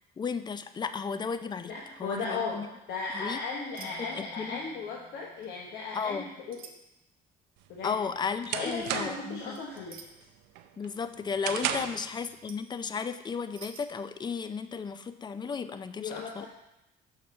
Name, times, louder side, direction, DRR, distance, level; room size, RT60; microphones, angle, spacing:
voice 1, 0.2-1.7 2.0-2.7 3.1-3.4 3.8-4.6 5.9-6.3 7.8-9.6 10.8-16.5, left 5 dB, 25° left, 11 dB, 0.4 m, -34 dB
voice 2, 1.6-6.6 7.7-8.0 8.5-10.0 11.7-11.8 16.0-16.5, left 4 dB, 80° left, -2 dB, 1.0 m, -36 dB
sound 1, 3.7-3.9 4.2-4.6 5.4-5.6 6.5-6.8 8.6-8.9 9.5-10.1 12.3-12.7 13.5-13.8, right 7 dB, 60° right, 0.9 m, -48 dB
Marimba xylophone, 3.8-6.7, equal, 10° left, 2.9 m, -58 dB
sound 2, 7.6-9.4 9.8-10.2 10.6-12.1, right 10 dB, 90° right, 0.5 m, -34 dB
5.8 x 4.3 x 6.2 m, 0.90 s
cardioid pair, 110°, 17 cm